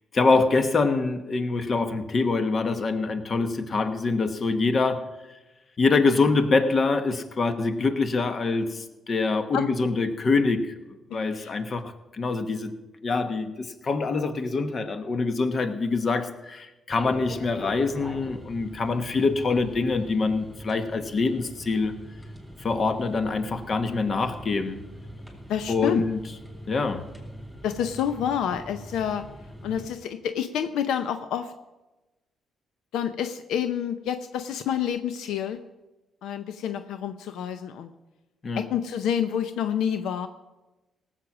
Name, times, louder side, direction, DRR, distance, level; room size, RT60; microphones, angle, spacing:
voice 1, 0.1-5.0 5.8-10.7 11.1-12.7 13.0-22.0 22.6-24.8 25.7-26.2 26.7-27.0 38.4-38.6, left 3 dB, 45° left, 9 dB, 1.2 m, -25 dB
sound 1, 16.9-29.9, equal, 5° left, 3.7 m, -42 dB
voice 2, 25.5-26.0 27.6-29.3 29.6-31.5 32.9-35.6 36.2-37.9 38.6-40.3, left 9 dB, 85° left, 10 dB, 0.6 m, -28 dB
17.5 x 7.6 x 6.0 m, 1.1 s
cardioid pair, 90°, 0 cm